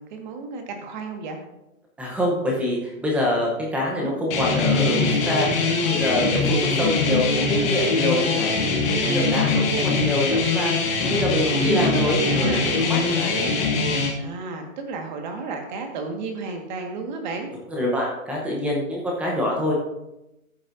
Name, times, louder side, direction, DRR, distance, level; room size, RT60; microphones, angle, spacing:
voice 1, 0.0-1.4 3.9-4.2 5.8-6.3 8.7-9.3 10.9-12.7 14.2-17.5, right 4 dB, 30° right, 4 dB, 1.5 m, -33 dB
voice 2, 2.0-10.7 11.0-13.5 14.0-14.2 17.7-19.7, left 1 dB, 5° right, -2 dB, 0.7 m, -26 dB
sound 1, 4.3-14.1, left 3 dB, 15° left, 1.1 m, -22 dB
13.5 x 7.5 x 2.6 m, 0.91 s
hypercardioid pair, 150°, 43 cm